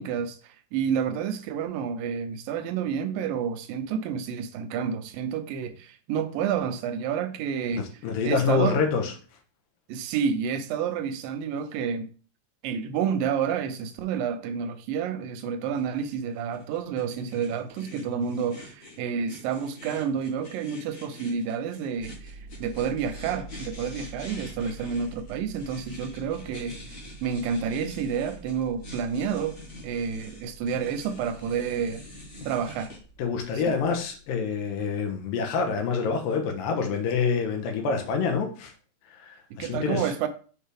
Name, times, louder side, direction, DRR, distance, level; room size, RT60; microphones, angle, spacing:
voice 1, 0.0-7.9 8.2-8.8 9.9-12.1 12.6-26.8 27.2-32.0 32.5-32.9 39.6-40.3, right 7 dB, 90° right, 2.4 m, -29 dB
voice 2, 7.7-9.1 33.2-38.7 39.1-40.1, left 5 dB, 85° left, 2.7 m, -27 dB
sound 1, 15.7-33.0, left 1 dB, 40° left, 1.2 m, -46 dB
sound 2, 21.9-34.6, right 2 dB, 70° right, 2.3 m, -47 dB
6.6 x 4.5 x 3.4 m
omnidirectional pair, 3.9 m